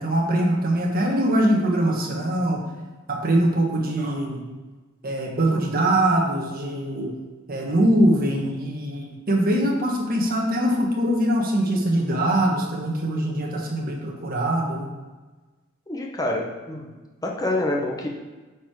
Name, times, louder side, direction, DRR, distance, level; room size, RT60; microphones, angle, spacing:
voice 1, 0.0-2.6 3.1-4.5 5.0-7.2 7.5-14.9, right 1 dB, 45° right, 0 dB, 1.4 m, -22 dB
voice 2, 15.9-16.9 17.2-18.1, left 1 dB, 20° left, 0 dB, 1.1 m, -27 dB
8.3 x 4.7 x 4.8 m, 1.3 s
head